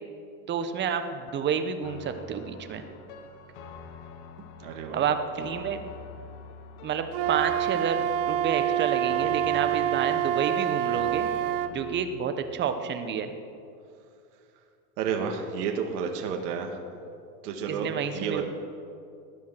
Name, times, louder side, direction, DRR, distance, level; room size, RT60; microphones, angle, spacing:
voice 1, 0.5-2.8 4.9-5.8 6.8-11.3 11.7-13.3 17.7-18.4, right 7 dB, 20° right, 8 dB, 1.0 m, -29 dB
sound 1, 1.8-12.0, left 6 dB, 55° left, 1.6 m, -46 dB
voice 2, 4.6-5.0 5.4-5.5 15.0-17.0 17.4-18.4, right 6 dB, 65° right, 3 dB, 2.0 m, -31 dB
Wind instrument woodwind instrument, 7.1-11.7, right 11 dB, 45° right, 0.8 m, -27 dB
19.0 x 10.5 x 5.9 m, 2.5 s
supercardioid pair, 135°, 49 cm